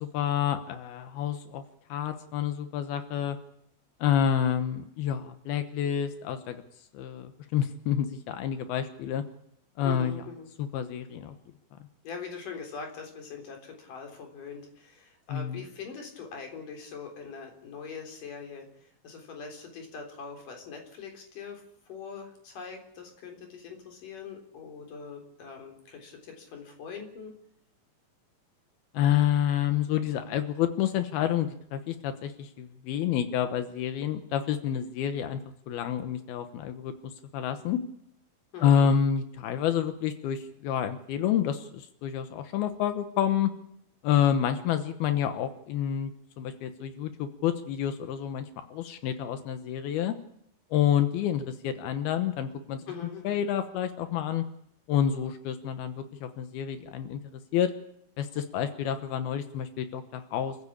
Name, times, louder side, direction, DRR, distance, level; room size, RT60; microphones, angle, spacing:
voice 1, 0.0-1.6 1.9-3.4 4.0-6.6 6.9-9.2 9.8-10.2 10.6-11.3 15.3-15.6 28.9-35.4 35.7-36.9 37.3-37.8 38.6-43.5 44.0-48.5 48.7-50.1 50.7-52.8 53.2-54.4 54.9-57.2 57.5-57.7 58.2-60.6, left 9 dB, 80° left, 9 dB, 3.0 m, -28 dB
voice 2, 9.8-10.5 12.0-27.3 38.5-38.9 52.9-53.4, left 5 dB, 60° left, 3 dB, 5.1 m, -42 dB
27.5 x 15.0 x 8.6 m, 0.75 s
omnidirectional pair, 4.4 m